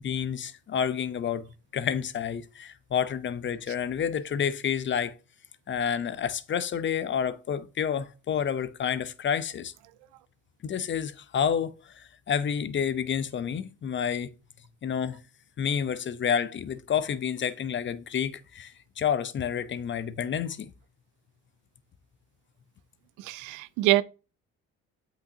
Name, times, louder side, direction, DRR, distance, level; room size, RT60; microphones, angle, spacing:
voice 1, 0.0-1.5 1.7-5.1 5.7-9.7 10.6-14.3 14.8-15.2 15.6-20.7, left 8 dB, 40° left, 0.6 m, -29 dB
voice 2, 23.2-24.0, right 17 dB, 90° right, 0.5 m, -24 dB
7.9 x 5.9 x 2.7 m
cardioid pair, 85°, 30 cm